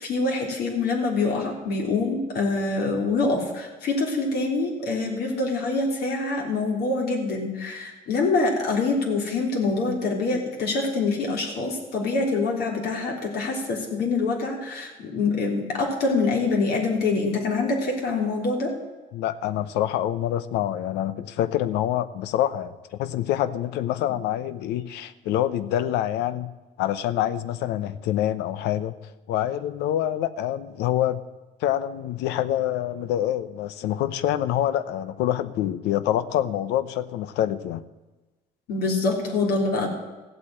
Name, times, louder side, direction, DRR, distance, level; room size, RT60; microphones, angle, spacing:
voice 1, 0.0-18.7 38.7-39.9, left 3 dB, 70° left, 0 dB, 3.7 m, -25 dB
voice 2, 19.1-26.5 26.8-28.9 29.3-31.2 31.6-37.8, left 12 dB, 90° left, 14 dB, 0.8 m, -26 dB
15.0 x 8.2 x 8.9 m, 1.2 s
cardioid pair, 110°, 17 cm